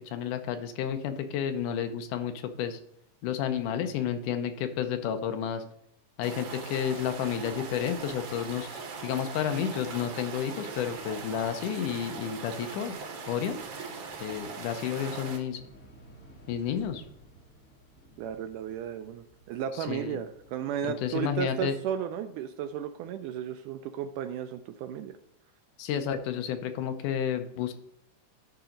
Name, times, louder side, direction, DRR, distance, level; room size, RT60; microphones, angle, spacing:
voice 1, 0.0-2.8 3.2-5.6 6.2-12.9 13.3-13.6 14.2-15.6 16.5-17.0 19.7-20.2 20.8-21.8 25.8-27.7, left 8 dB, 75° left, 8 dB, 2.1 m, -31 dB
sound 1, 6.2-15.4, right 5 dB, 60° right, 1.8 m, -40 dB
sound 2, 15.5-20.5, right 1 dB, 40° left, 1.3 m, -55 dB
voice 2, 18.2-25.2, right 9 dB, 80° right, 8 dB, 1.9 m, -34 dB
11.5 x 4.0 x 5.1 m, 0.73 s
omnidirectional pair, 4.0 m